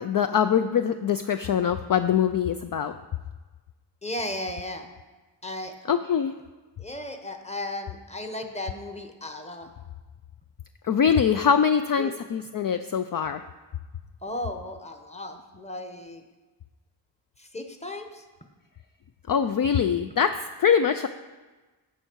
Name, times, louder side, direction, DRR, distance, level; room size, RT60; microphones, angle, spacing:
voice 1, 0.0-2.9 5.9-6.3 10.8-13.4 19.3-21.1, left 7 dB, 50° left, 9 dB, 0.5 m, -23 dB
voice 2, 4.0-4.9 5.4-5.7 6.8-9.7 12.0-12.1 14.2-16.2 17.4-18.2, left 1 dB, 15° left, 6 dB, 1.1 m, -35 dB
14.5 x 5.5 x 4.6 m, 1.2 s
wide cardioid pair, 70°, 45 cm